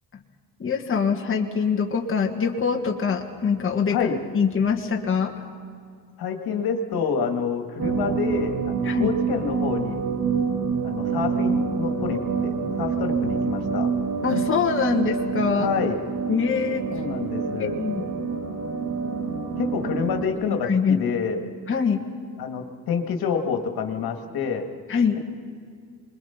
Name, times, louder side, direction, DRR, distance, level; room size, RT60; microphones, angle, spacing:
voice 1, 0.6-4.1 4.3-5.3 8.8-9.1 14.2-15.7 16.3-16.8 17.8-18.0 20.6-21.0 21.7-22.0 24.9-25.2, left 6 dB, 35° left, 1 dB, 1.7 m, -23 dB
voice 2, 3.9-4.2 6.2-10.0 10.8-13.9 15.6-16.0 16.9-17.8 19.6-21.4 22.4-24.7, left 6 dB, 70° left, 4 dB, 2.0 m, -28 dB
sound 1, 7.8-20.3, right 5 dB, 55° right, 2.0 m, -27 dB
25.5 x 21.5 x 5.8 m, 2.2 s
cardioid pair, 100°, 38 cm